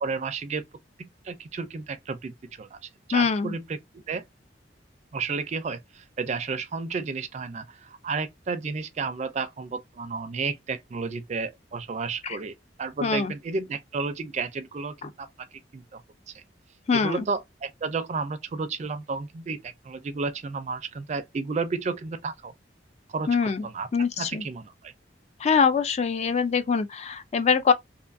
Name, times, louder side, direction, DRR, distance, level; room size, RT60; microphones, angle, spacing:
voice 1, 0.0-0.6 1.0-3.8 4.1-4.2 5.1-15.5 15.7-16.0 16.3-16.4 16.9-22.5 23.1-23.9 24.2-24.9, right 4 dB, 40° right, 0.4 m, -32 dB
voice 2, 3.1-3.5 12.2-12.4 13.0-13.3 15.0-15.1 16.9-17.3 23.3-23.7 23.9-24.4 25.4-27.7, left 5 dB, 35° left, 0.3 m, -23 dB
2.5 x 2.4 x 2.5 m
head